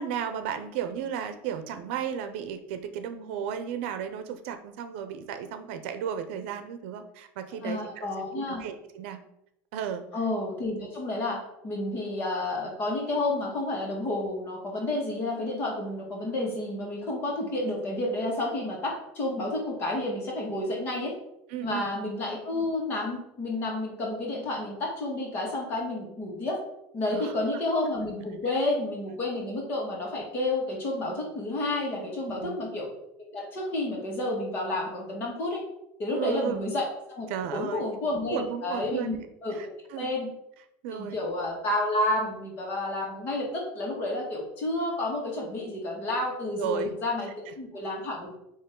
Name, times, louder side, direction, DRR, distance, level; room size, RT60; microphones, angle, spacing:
voice 1, 0.0-8.1 8.5-9.2 9.7-10.1 21.5-21.9 27.1-27.4 32.3-32.6 36.1-36.6 37.3-37.8 38.1-39.2 39.5-40.1 40.8-41.2 46.5-46.9 47.5-47.6, right 8 dB, 75° right, 9 dB, 0.7 m, -34 dB
voice 2, 7.6-8.6 10.1-21.1 21.6-26.6 26.9-32.9 33.2-35.6 36.0-39.6 40.0-40.3 40.9-48.3, left 2 dB, 35° left, -1 dB, 1.9 m, -30 dB
8.8 x 3.1 x 3.8 m, 0.80 s
cardioid pair, 165°, 6 cm